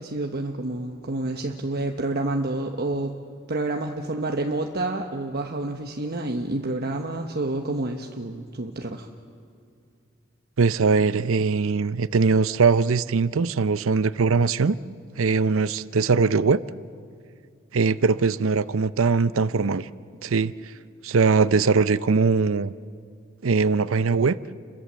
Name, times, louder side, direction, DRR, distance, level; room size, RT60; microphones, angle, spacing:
voice 1, 0.0-3.1 3.5-9.1, right 2 dB, 50° right, 3 dB, 1.1 m, -29 dB
voice 2, 10.6-14.8 15.2-16.6 17.7-19.9 20.2-20.5 21.0-22.7 23.4-24.4, right 4 dB, 65° right, 16 dB, 0.6 m, -21 dB
30.0 x 22.5 x 7.5 m, 2.2 s
head